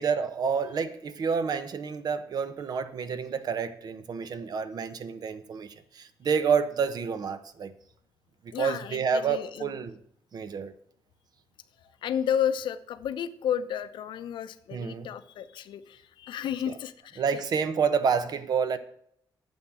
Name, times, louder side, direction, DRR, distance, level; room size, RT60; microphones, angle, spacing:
voice 1, 0.0-7.7 8.4-10.0 10.3-10.7 14.7-15.1 17.2-18.8, right 6 dB, 55° right, 1.0 m, -29 dB
voice 2, 8.5-9.8 12.0-17.4, left 9 dB, 90° left, 0.8 m, -32 dB
9.4 x 7.2 x 6.2 m
cardioid pair, 130°, 8 cm